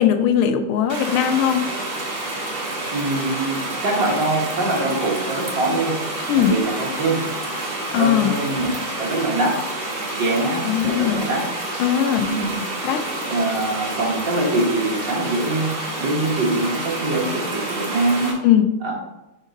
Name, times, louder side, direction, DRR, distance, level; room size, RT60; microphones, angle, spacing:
voice 1, 0.0-1.6 6.3-6.5 7.9-8.3 10.6-11.3 11.8-12.3 12.8-13.0 18.4-18.7, left 10 dB, 85° left, 8 dB, 1.5 m, -19 dB
sound 1, 0.9-18.3, right 2 dB, 35° right, 1.1 m, -29 dB
voice 2, 2.9-6.0 6.4-7.3 8.0-9.7 10.1-11.5 12.2-12.6 13.3-18.4 18.8-18.9, right 2 dB, 60° right, -4 dB, 2.2 m, -23 dB
5.2 x 3.7 x 5.2 m, 0.96 s
omnidirectional pair, 2.3 m